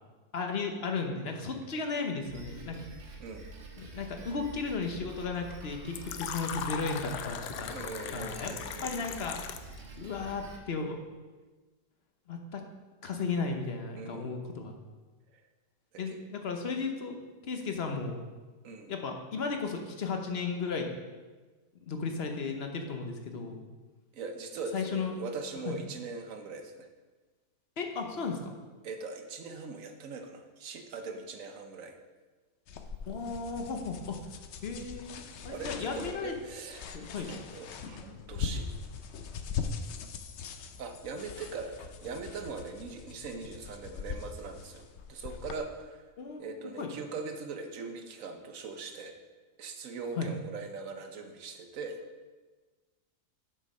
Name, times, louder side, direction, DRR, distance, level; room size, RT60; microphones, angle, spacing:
voice 1, 0.3-2.8 3.8-7.8 8.1-8.5 8.8-9.4 9.9-11.0 12.3-12.6 13.0-14.8 16.0-17.2 17.4-18.2 18.9-20.9 21.8-23.6 24.7-25.1 25.6-25.8 27.8-28.4 33.1-34.2 34.6-36.3 36.9-37.3 46.2-46.9 50.2-50.3, left 4 dB, 45° left, 4 dB, 1.0 m, -35 dB
Drum kit, 2.2-10.6, right 2 dB, 80° right, 1.9 m, -47 dB
Fill (with liquid), 5.9-9.8, left 8 dB, 85° left, 1.2 m, -39 dB
voice 2, 7.6-9.0 14.0-14.4 15.3-15.4 18.6-18.9 24.1-26.9 28.8-32.0 35.5-38.7 40.8-46.0 46.4-49.1 49.6-52.0, right 4 dB, 60° right, 5 dB, 1.2 m, -41 dB
sound 1, 32.7-45.6, left 5 dB, 65° left, 0.7 m, -41 dB
7.9 x 6.3 x 5.3 m, 1.3 s
omnidirectional pair, 1.8 m